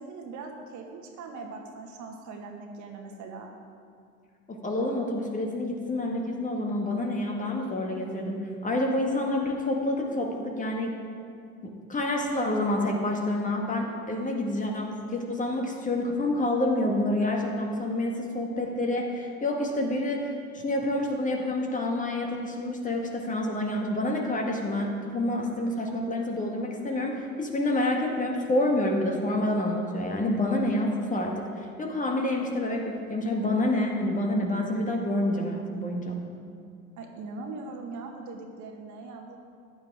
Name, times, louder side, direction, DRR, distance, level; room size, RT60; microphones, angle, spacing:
voice 1, 0.0-3.5 37.0-39.4, right 3 dB, 45° right, 2 dB, 1.7 m, -40 dB
voice 2, 4.5-11.0 11.6-36.2, left 1 dB, 20° left, 1 dB, 1.6 m, -28 dB
14.5 x 9.9 x 3.6 m, 2.3 s
figure-of-eight pair, 75°, 42 cm